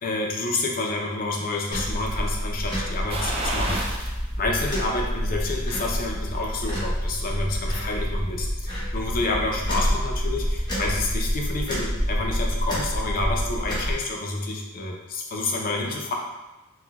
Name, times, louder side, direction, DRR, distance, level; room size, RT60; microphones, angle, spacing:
voice 1, 0.0-16.1, left 2 dB, 40° left, 0 dB, 0.5 m, -29 dB
sound 1, 1.7-13.9, equal, 20° left, 0.8 m, -28 dB
sound 2, 3.1-4.2 4.6-4.7 6.2-7.0 7.3-7.4, right 1 dB, 25° right, 0.4 m, -31 dB
4.2 x 2.2 x 2.2 m, 1.1 s
head